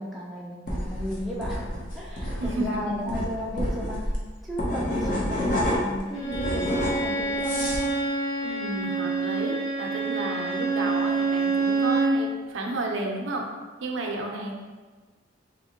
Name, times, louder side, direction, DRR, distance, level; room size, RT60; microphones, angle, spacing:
voice 1, 0.0-1.6 1.9-4.1 4.4-7.9, left 1 dB, ahead, -6 dB, 0.4 m, -34 dB
sound 1, 0.7-6.0 6.3-7.9, left 1 dB, 40° left, 0.6 m, -29 dB
voice 2, 2.4-3.2 8.4-13.4 13.8-14.5, right 2 dB, 75° right, 1 dB, 0.5 m, -32 dB
Bowed string instrument, 6.1-12.2, right 3 dB, 90° left, 1.0 m, -27 dB
3.4 x 2.8 x 2.8 m, 1.3 s
head